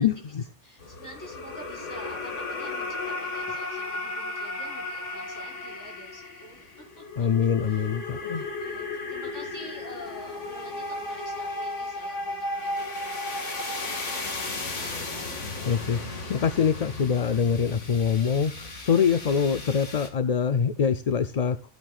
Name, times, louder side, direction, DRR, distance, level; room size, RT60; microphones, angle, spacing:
voice 1, 0.0-0.4 7.2-8.5 15.7-21.6, left 7 dB, 50° left, 12 dB, 0.5 m, -24 dB
voice 2, 0.6-7.9 8.3-15.5 19.0-19.5, equal, 15° left, -2 dB, 6.1 m, -48 dB
sound 1, 0.8-20.1, left 2 dB, 90° left, 2.4 m, -35 dB
15.5 x 8.7 x 2.4 m, 0.28 s
omnidirectional pair, 1.2 m